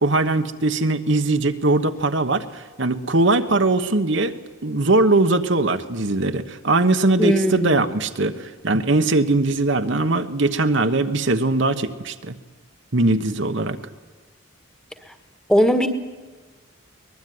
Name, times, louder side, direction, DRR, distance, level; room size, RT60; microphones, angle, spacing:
voice 1, 0.0-12.3 12.9-13.8, right 2 dB, 55° right, 8 dB, 1.2 m, -20 dB
voice 2, 7.2-7.8 15.5-15.9, equal, 5° left, 8 dB, 1.6 m, -18 dB
23.0 x 20.5 x 9.5 m, 1.3 s
head